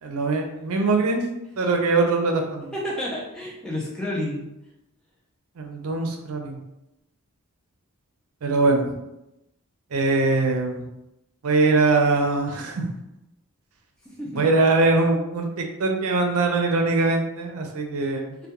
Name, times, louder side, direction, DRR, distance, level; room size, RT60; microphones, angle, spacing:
voice 1, 0.0-1.2 1.6-2.7 5.6-6.6 8.4-8.9 9.9-10.8 11.4-12.9 14.4-18.4, right 3 dB, 80° right, 3 dB, 0.5 m, -22 dB
voice 2, 2.7-4.4 14.2-14.5, left 1 dB, 5° left, -5 dB, 0.4 m, -30 dB
2.2 x 2.1 x 2.9 m, 0.91 s
head